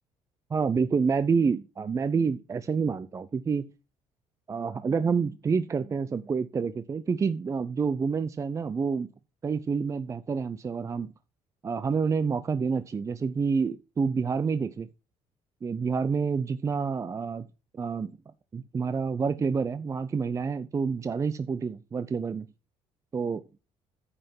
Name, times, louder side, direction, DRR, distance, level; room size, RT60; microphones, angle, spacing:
voice 1, 0.5-3.7 4.5-9.1 9.4-11.1 11.6-14.9 15.6-17.5 17.7-18.1 18.5-22.5 23.1-23.4, right 5 dB, 25° right, 0.5 m, -28 dB
9.8 x 5.7 x 5.3 m
cardioid pair, 120°, 12 cm